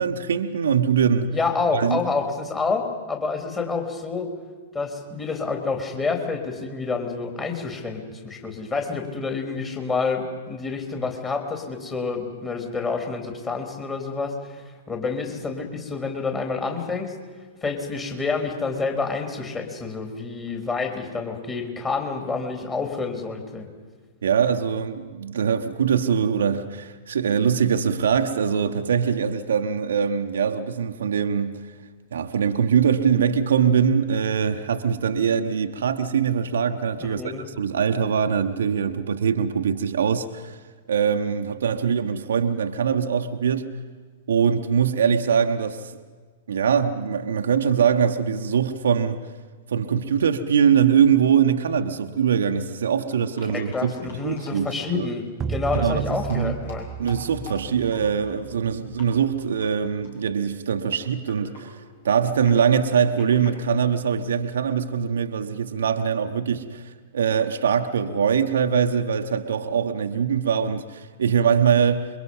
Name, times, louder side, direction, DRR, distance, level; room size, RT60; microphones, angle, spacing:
voice 1, 0.0-1.3 1.7-2.0 24.2-31.6 32.1-40.6 40.9-43.8 44.3-45.9 46.5-49.2 49.7-53.9 54.2-55.1 55.7-56.6 57.0-61.8 62.0-72.1, right 7 dB, 65° right, 1.1 m, -22 dB
voice 2, 1.3-4.3 4.7-17.1 17.6-23.7 37.0-37.5 53.5-56.9, left 4 dB, 20° left, 3.5 m, -28 dB
sound 1, 50.1-50.2 50.6-50.7 51.6-51.7 52.0-52.1 53.1-55.0 55.6-55.9 56.2-58.7 58.9-59.1 59.4-59.7 60.0-60.4 60.8-64.7, left 3 dB, 65° left, 6.1 m, -46 dB
sound 2, 55.4-59.9, right 6 dB, 25° right, 0.7 m, -34 dB
27.0 x 23.0 x 5.6 m
figure-of-eight pair, 100°, 0 cm